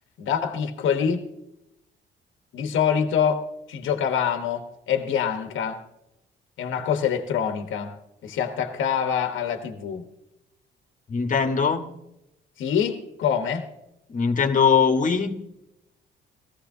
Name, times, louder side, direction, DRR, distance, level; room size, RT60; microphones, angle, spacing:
voice 1, 0.2-1.3 2.5-5.8 6.6-8.0 8.2-10.0 12.6-13.7, left 7 dB, 75° left, 1.1 m, -25 dB
voice 2, 11.1-11.9 14.1-15.3, left 6 dB, 40° left, 1.4 m, -21 dB
18.5 x 15.0 x 2.7 m
cardioid pair, 90°, 20 cm